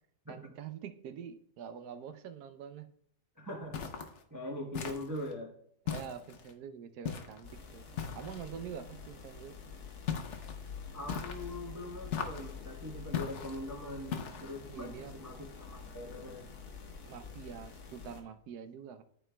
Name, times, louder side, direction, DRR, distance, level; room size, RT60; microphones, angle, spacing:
voice 1, 0.3-2.9 5.9-7.9 8.1-9.5 14.7-15.2 17.0-19.0, right 8 dB, 85° right, 10 dB, 1.2 m, -45 dB
voice 2, 3.4-3.8 4.3-5.5 10.9-16.5, left 1 dB, 15° right, -1 dB, 0.8 m, -42 dB
sound 1, 3.7-4.2 4.7-5.3 5.9-6.5 7.0-7.4 8.0-8.5 10.1-10.6 11.1-11.6 12.1-12.6 13.1-13.6 14.1-14.6, left 7 dB, 55° left, 0.9 m, -38 dB
sound 2, 7.4-18.2, left 5 dB, 80° left, 1.5 m, -48 dB
12.5 x 4.4 x 2.2 m, 0.69 s
omnidirectional pair, 1.7 m